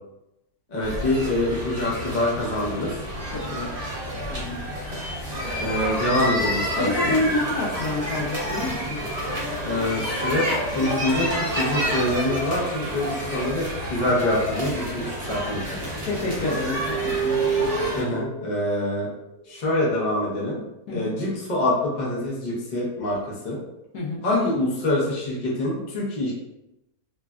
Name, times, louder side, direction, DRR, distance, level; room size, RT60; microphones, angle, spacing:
voice 1, 0.7-2.9 5.6-7.2 9.6-16.0 17.9-19.1 19.5-20.6 20.9-23.6 24.2-26.3, left 1 dB, 45° left, -5 dB, 0.6 m, -25 dB
sound 1, 0.8-18.0, equal, 35° right, 0.6 m, -29 dB
voice 2, 3.3-3.7 4.3-4.6 6.8-9.0 16.0-18.2 20.9-21.1 23.9-24.2, left 2 dB, 70° left, -4 dB, 1.0 m, -28 dB
sound 2, 5.2-7.1 9.4-10.3 10.9-13.2 14.0-14.3 14.5-15.0 15.7-20.4, right 6 dB, 80° right, 1.1 m, -33 dB
3.1 x 2.4 x 2.2 m, 0.89 s
omnidirectional pair, 1.8 m